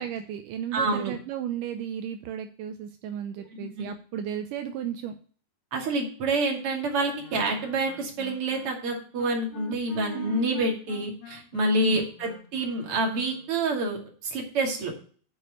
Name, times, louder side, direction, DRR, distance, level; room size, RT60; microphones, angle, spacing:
voice 1, 0.0-5.2 10.1-10.4 11.8-12.1, right 9 dB, 80° right, 7 dB, 1.9 m, -34 dB
voice 2, 0.7-1.1 3.8-3.9 5.7-14.0 14.2-14.9, right 2 dB, 40° right, 1 dB, 2.8 m, -27 dB
Wind instrument woodwind instrument, 7.2-13.6, left 8 dB, 90° left, 3.5 m, -46 dB
7.7 x 6.2 x 7.6 m, 0.43 s
omnidirectional pair, 4.7 m